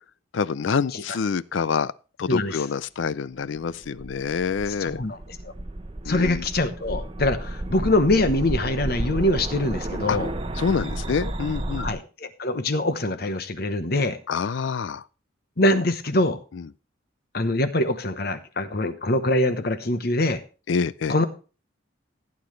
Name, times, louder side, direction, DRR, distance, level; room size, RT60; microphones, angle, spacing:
voice 1, 0.3-1.9 2.2-5.0 6.1-6.4 10.1-10.2 10.6-11.9 14.3-15.0 16.5-16.6 20.7-21.2, left 5 dB, 75° left, 0.4 m, -26 dB
voice 2, 2.3-2.6 4.7-5.2 6.1-10.3 11.8-14.2 15.6-16.4 17.3-20.4 21.1-21.3, left 1 dB, 50° left, 1.0 m, -24 dB
sound 1, 3.6-11.9, right 1 dB, 25° right, 0.8 m, -32 dB
15.5 x 8.7 x 3.2 m
head